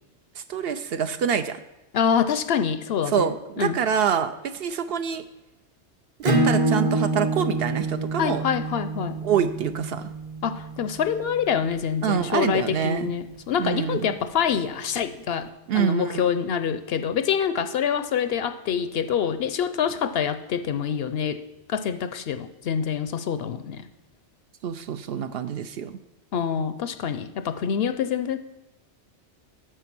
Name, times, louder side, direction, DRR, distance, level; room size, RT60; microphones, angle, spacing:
voice 1, 0.4-1.6 3.1-5.2 6.2-8.4 9.2-10.1 12.0-13.1 13.6-14.1 15.7-16.2 24.6-26.0, right 8 dB, 65° right, 10 dB, 0.7 m, -26 dB
voice 2, 1.9-3.8 8.2-9.2 10.4-15.5 15.7-21.4 21.7-23.8 26.3-28.4, left 7 dB, 65° left, 11 dB, 0.7 m, -26 dB
Acoustic guitar / Strum, 6.2-11.5, right 2 dB, 30° right, 0.9 m, -26 dB
9.4 x 6.6 x 6.0 m, 0.95 s
omnidirectional pair, 1.2 m